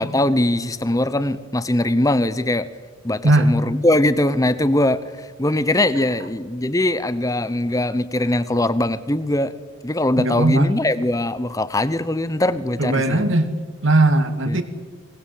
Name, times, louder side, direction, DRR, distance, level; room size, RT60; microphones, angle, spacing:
voice 1, 0.0-2.7 3.0-9.5 9.8-13.3 14.5-14.6, left 1 dB, 15° left, 15 dB, 0.8 m, -21 dB
voice 2, 10.2-10.7 12.8-13.5 13.8-14.6, right 2 dB, 60° right, 8 dB, 2.0 m, -18 dB
23.5 x 19.5 x 7.7 m, 1.5 s
head